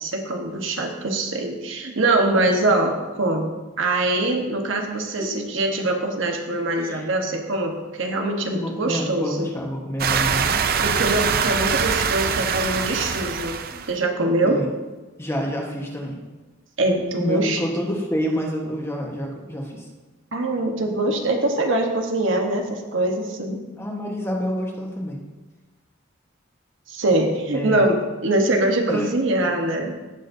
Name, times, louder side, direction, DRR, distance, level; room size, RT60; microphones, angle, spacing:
voice 1, 0.0-9.5 10.8-13.6 13.9-14.7 16.8-17.6 20.3-23.6 26.9-30.0, right 2 dB, 75° right, 2 dB, 1.3 m, -23 dB
voice 2, 2.3-2.7 5.2-5.3 6.8-7.1 8.4-10.6 13.7-13.8 14.4-14.7 15.2-16.2 17.2-19.9 23.8-25.2 27.5-27.8 28.9-29.1, equal, 15° left, 0 dB, 1.3 m, -28 dB
sound 1, 10.0-13.9, right 6 dB, 45° right, 0.5 m, -23 dB
17.5 x 6.3 x 2.7 m, 1.2 s
head